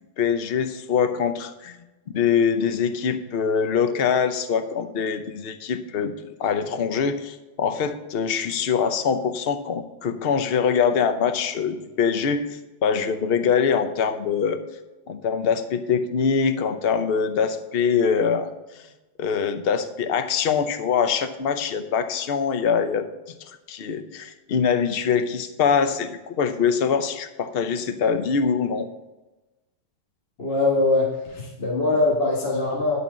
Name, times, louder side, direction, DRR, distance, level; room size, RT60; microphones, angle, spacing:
voice 1, 0.2-6.1 6.4-12.4 12.8-14.6 15.1-18.5 19.2-23.4 23.7-28.9, left 6 dB, 55° left, 9 dB, 0.7 m, -23 dB
voice 2, 30.4-33.0, left 2 dB, 35° left, -2 dB, 1.5 m, -22 dB
11.5 x 4.4 x 7.4 m, 1.1 s
omnidirectional pair, 1.9 m